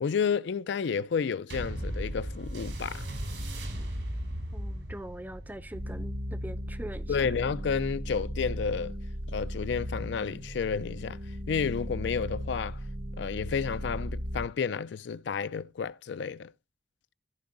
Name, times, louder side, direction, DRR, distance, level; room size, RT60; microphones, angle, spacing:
voice 1, 0.0-3.1 7.1-9.0 9.3-11.2 11.5-12.8 13.2-16.5, left 6 dB, 70° left, 0.4 m, -31 dB
sound 1, 1.5-10.3 11.0-11.1, equal, 80° right, 2.7 m, -38 dB
voice 2, 4.5-7.3, right 1 dB, 10° right, 0.5 m, -42 dB
sound 2, 5.7-14.5, equal, 50° right, 0.9 m, -36 dB
14.0 x 4.8 x 3.8 m
head